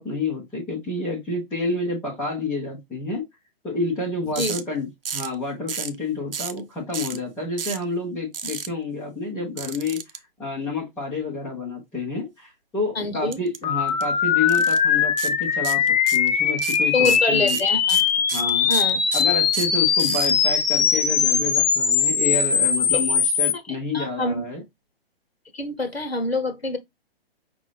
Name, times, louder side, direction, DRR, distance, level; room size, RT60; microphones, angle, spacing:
voice 1, 0.0-3.2 3.6-10.0 10.4-15.9 16.1-17.6 18.3-18.7 19.1-24.6, left 3 dB, 5° left, 0.3 m, -29 dB
sound 1, 4.4-4.6 5.1-5.4 5.7-6.0 6.3-6.6 6.9-7.2 7.6-7.8 8.3-8.7 9.6-10.2 13.3-13.6 13.9-14.0 14.5-14.8 15.2-15.3 15.6-16.3 16.6-20.3, right 7 dB, 65° right, 0.7 m, -31 dB
voice 2, 12.9-13.4 16.9-18.0 18.7-19.0 23.9-24.5 25.5-26.8, left 2 dB, 90° left, 1.1 m, -25 dB
sound 2, 13.6-23.5, left 7 dB, 45° left, 0.8 m, -21 dB
5.2 x 2.5 x 3.2 m
figure-of-eight pair, 120°, 30 cm